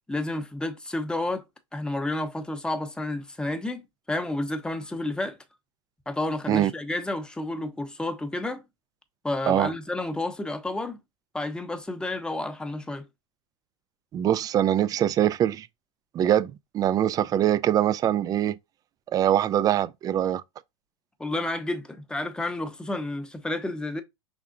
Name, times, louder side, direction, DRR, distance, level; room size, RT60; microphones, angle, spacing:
voice 1, 0.1-1.5 1.7-5.4 6.1-8.6 9.2-11.0 11.3-13.1 21.2-24.0, left 2 dB, 5° left, 0.8 m, -30 dB
voice 2, 14.1-15.7 16.1-18.6 19.1-20.4, right 11 dB, 25° right, 0.3 m, -23 dB
5.7 x 3.6 x 2.4 m
hypercardioid pair, 110°, 16 cm